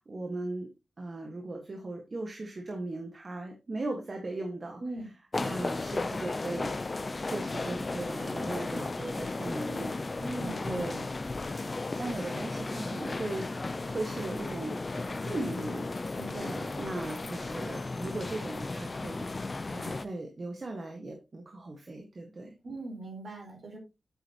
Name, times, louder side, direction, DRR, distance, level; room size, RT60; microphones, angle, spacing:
voice 1, 0.1-0.7 1.0-4.8 5.4-6.8 7.2-11.0 11.9-14.8 15.0-15.9 16.4-19.3 19.7-22.5, right 2 dB, 45° right, 2 dB, 1.6 m, -38 dB
voice 2, 4.8-5.1 10.2-11.2 16.1-16.6 22.6-23.8, right 2 dB, 60° right, 2 dB, 4.4 m, -40 dB
sound 1, 5.3-20.0, left 3 dB, 35° left, 0.6 m, -35 dB
8.9 x 8.3 x 3.0 m, 0.25 s
wide cardioid pair, 100°, 0 cm